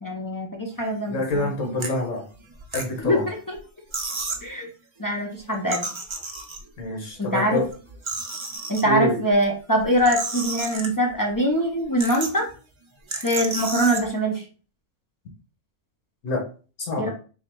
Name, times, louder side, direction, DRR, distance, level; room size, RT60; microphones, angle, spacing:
voice 1, 0.0-1.5 3.0-3.6 4.4-4.7 5.0-5.9 7.2-7.6 8.7-12.4 13.2-14.5 17.0-17.1, equal, 35° left, 0 dB, 0.3 m, -23 dB
voice 2, 1.1-2.2 2.7-3.2 6.8-7.7 8.8-9.2 16.2-16.4 16.8-17.1, left 1 dB, 85° left, 1 dB, 1.5 m, -26 dB
sound 1, 1.2-1.4 1.8-1.9 2.5-3.2 3.6-3.7 3.9-4.5 5.5-6.8 7.5-8.8 9.8-11.2 11.6-11.7 12.0-12.5 13.1-14.0, right 3 dB, 30° right, 0.5 m, -32 dB
3.8 x 2.1 x 4.4 m, 0.37 s
omnidirectional pair, 1.3 m